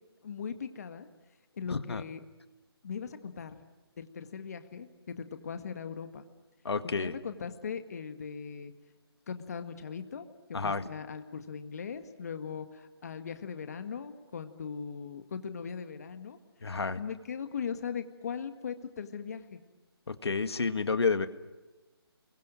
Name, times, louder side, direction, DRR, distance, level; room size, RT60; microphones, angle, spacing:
voice 1, 0.2-1.1 1.5-2.2 2.8-3.6 4.0-6.2 7.0-8.7 9.3-16.4 17.0-19.6, left 6 dB, 40° left, 8 dB, 1.8 m, -39 dB
voice 2, 1.7-2.0 6.6-7.1 10.5-10.8 16.6-17.0 20.1-21.3, left 4 dB, 80° left, 10 dB, 1.9 m, -30 dB
29.5 x 23.5 x 7.6 m, 1.1 s
hypercardioid pair, 170°, 13 cm